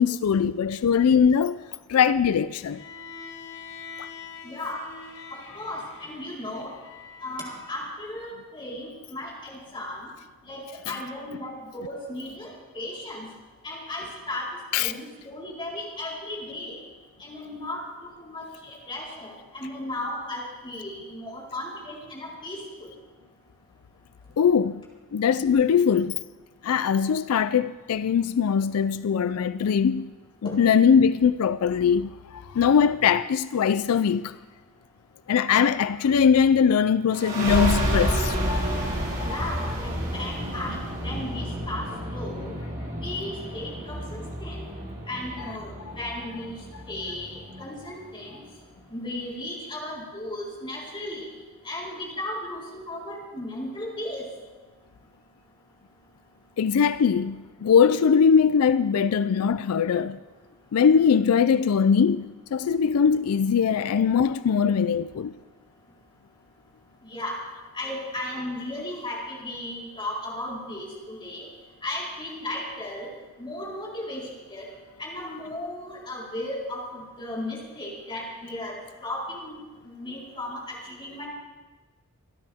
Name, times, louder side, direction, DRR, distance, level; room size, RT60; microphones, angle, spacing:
voice 1, 0.0-1.6 1.9-2.8 4.0-4.1 10.9-11.0 14.7-14.9 24.4-24.8 25.1-26.2 26.6-30.1 30.4-34.4 35.3-39.8 45.4-45.6 47.9-48.0 56.6-60.2 60.7-65.3, left 7 dB, 85° left, 0.4 m, -21 dB
Bowed string instrument, 2.7-7.9, left 5 dB, 60° left, 2.1 m, -44 dB
voice 2, 4.4-4.8 5.3-6.7 7.2-10.1 10.5-13.3 13.6-16.7 17.2-17.8 18.2-22.9 30.4-30.5 39.2-40.8 41.0-42.5 43.0-44.7 45.1-46.6 46.9-48.4 48.9-51.3 51.6-54.3 67.0-67.4 67.7-71.5 71.8-73.1 73.4-74.7 75.0-79.6 79.8-81.3, left 1 dB, 25° left, 4.0 m, -35 dB
sound 1, 37.1-48.4, equal, 40° right, 6.1 m, -30 dB
25.0 x 12.5 x 3.5 m
head